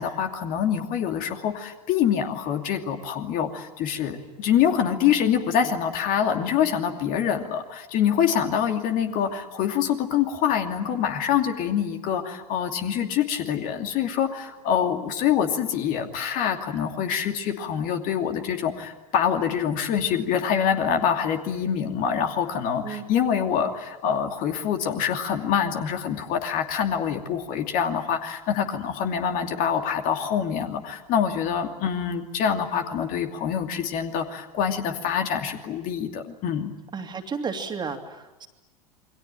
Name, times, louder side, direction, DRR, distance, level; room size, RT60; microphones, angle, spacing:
voice 1, 0.0-36.7, left 8 dB, 40° left, 4 dB, 2.7 m, -25 dB
voice 2, 36.9-38.5, right 5 dB, 20° right, 5 dB, 3.0 m, -32 dB
28.5 x 23.0 x 9.1 m, 1.1 s
figure-of-eight pair, 85°, 21 cm